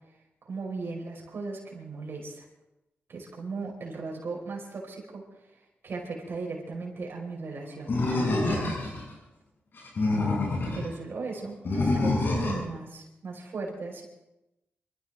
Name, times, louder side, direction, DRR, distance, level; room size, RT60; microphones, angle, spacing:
voice 1, 0.4-2.4 3.1-5.2 5.8-8.0 8.2-8.8 10.7-14.0, right 4 dB, 65° right, -1 dB, 5.2 m, -37 dB
Animal, 7.9-9.0 9.8-10.9 11.7-12.7, left 2 dB, 60° left, 7.4 m, -26 dB
25.5 x 14.0 x 3.7 m, 0.94 s
cardioid pair, 70°, 4 cm